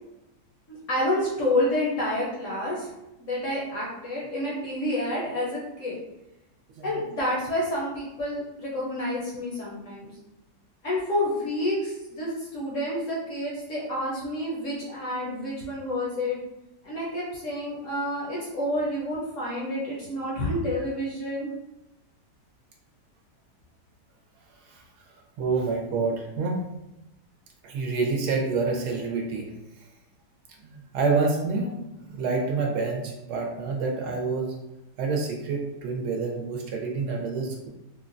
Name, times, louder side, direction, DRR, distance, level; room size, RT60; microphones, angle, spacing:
voice 1, 0.7-2.9 3.2-6.0 6.8-10.1 10.8-16.4 16.8-21.5, left 1 dB, 60° left, -5 dB, 0.8 m, -29 dB
voice 2, 25.4-26.6 27.6-29.5 30.6-31.7 32.1-34.5 35.0-37.7, right 4 dB, 75° right, 1 dB, 1.1 m, -27 dB
3.8 x 2.1 x 2.5 m, 0.93 s
omnidirectional pair, 1.9 m